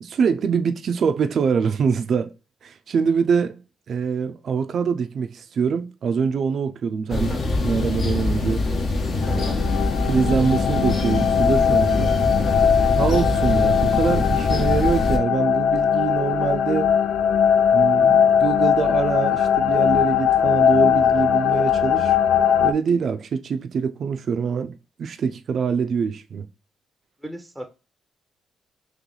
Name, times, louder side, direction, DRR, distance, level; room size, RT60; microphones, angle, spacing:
voice 1, 0.0-2.3 2.6-3.6 3.9-7.3 7.6-8.6 9.3-9.5 10.1-12.2 13.0-16.9 17.7-22.2 22.6-26.5, right 6 dB, 60° right, 0.4 m, -24 dB
sound 1, 7.1-15.2, left 2 dB, 50° left, 0.9 m, -23 dB
voice 2, 7.1-7.4 9.3-9.6 12.4-12.7 27.2-27.7, equal, ahead, 0.6 m, -37 dB
sound 2, 9.2-22.7, left 8 dB, 85° left, 0.4 m, -20 dB
3.1 x 3.0 x 3.8 m
cardioid pair, 90°, 0 cm